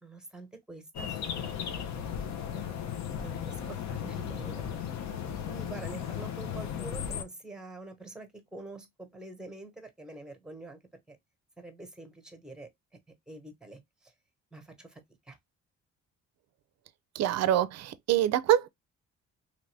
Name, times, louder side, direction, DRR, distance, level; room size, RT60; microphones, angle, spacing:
voice 1, 0.0-2.1 2.5-2.8 3.2-4.7 5.5-10.8 11.1-11.2 11.6-13.0 13.3-14.1 14.5-15.4, right 2 dB, ahead, 1.1 m, -46 dB
sound 1, 0.9-7.2, left 8 dB, 65° left, 0.7 m, -36 dB
voice 2, 17.2-18.7, right 12 dB, 60° right, 0.5 m, -25 dB
3.0 x 2.6 x 3.2 m
cardioid pair, 90°, 30 cm